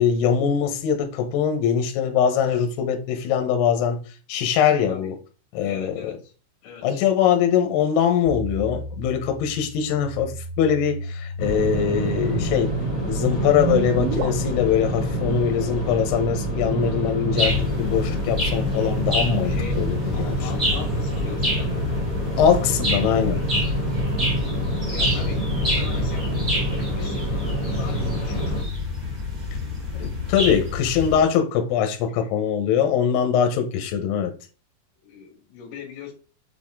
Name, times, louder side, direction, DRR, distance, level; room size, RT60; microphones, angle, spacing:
voice 1, 0.0-4.0 4.3-5.2 5.5-6.1 6.8-10.3 10.6-12.7 13.0-20.4 22.4-23.4 30.0-34.3, left 8 dB, 75° left, 2.7 m, -22 dB
voice 2, 5.6-6.3 6.6-7.0 19.4-19.8 20.1-21.9 24.2-28.5 32.2-32.3 35.0-36.1, left 7 dB, 60° left, 2.6 m, -40 dB
sound 1, 8.3-14.2, right 4 dB, 80° right, 3.9 m, -32 dB
sound 2, 11.4-28.6, equal, 40° left, 2.4 m, -27 dB
sound 3, 17.4-31.2, left 2 dB, 15° right, 1.7 m, -28 dB
7.2 x 4.2 x 3.6 m
omnidirectional pair, 5.4 m